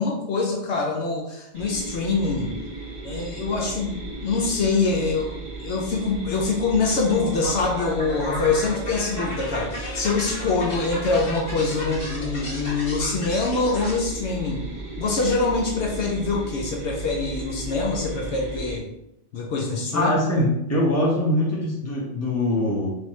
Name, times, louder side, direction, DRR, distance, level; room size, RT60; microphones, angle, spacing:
voice 1, 0.0-2.5 3.0-14.6 15.0-18.8 19.3-20.1, left 4 dB, 70° left, 0 dB, 0.9 m, -24 dB
sound 1, 1.5-18.8, right 3 dB, 75° right, 1.7 m, -35 dB
sound 2, 7.0-14.0, left 1 dB, 35° left, 1.4 m, -35 dB
voice 2, 19.9-22.9, left 1 dB, 15° left, -5 dB, 1.0 m, -22 dB
4.1 x 3.2 x 3.1 m, 0.83 s
omnidirectional pair, 1.2 m